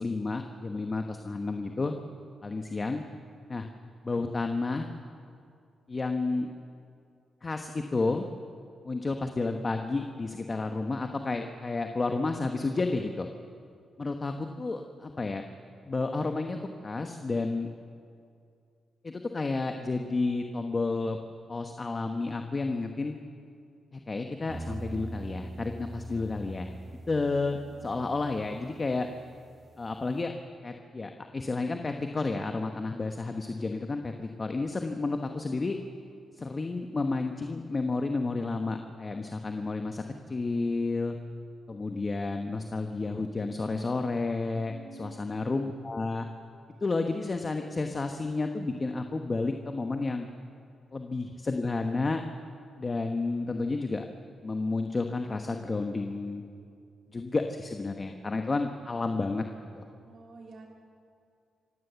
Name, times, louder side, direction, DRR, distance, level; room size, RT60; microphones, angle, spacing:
voice 1, 0.0-1.9 2.4-3.0 3.5-3.7 4.0-4.9 5.9-6.5 7.4-8.3 8.8-13.3 14.0-15.4 15.9-17.7 19.0-21.2 21.5-23.2 23.9-26.7 27.1-29.1 29.8-30.3 30.6-35.8 36.4-41.2 41.7-44.7 45.0-46.3 46.8-50.3 50.9-52.2 52.8-54.0 54.4-56.4 57.1-59.4 59.8-59.9, left 3 dB, 30° left, 5 dB, 1.1 m, -31 dB
sound 1, 24.5-30.2, right 2 dB, 35° right, 1.1 m, -43 dB
voice 2, 44.5-45.2 60.0-60.7, right 3 dB, 60° right, 0 dB, 3.0 m, -48 dB
26.0 x 16.5 x 7.0 m, 2.3 s
cardioid pair, 95°, 0 cm